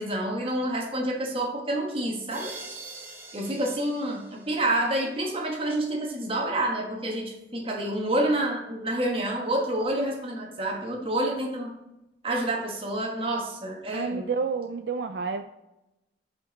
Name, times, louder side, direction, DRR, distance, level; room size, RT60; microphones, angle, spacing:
voice 1, 0.0-2.5 3.3-11.7 12.2-14.3, right 1 dB, 30° right, 0 dB, 1.2 m, -28 dB
sound 1, 2.3-5.1, right 3 dB, 10° right, 0.9 m, -44 dB
voice 2, 13.9-15.4, right 5 dB, 70° right, 8 dB, 0.4 m, -29 dB
5.2 x 5.2 x 3.9 m, 0.92 s
head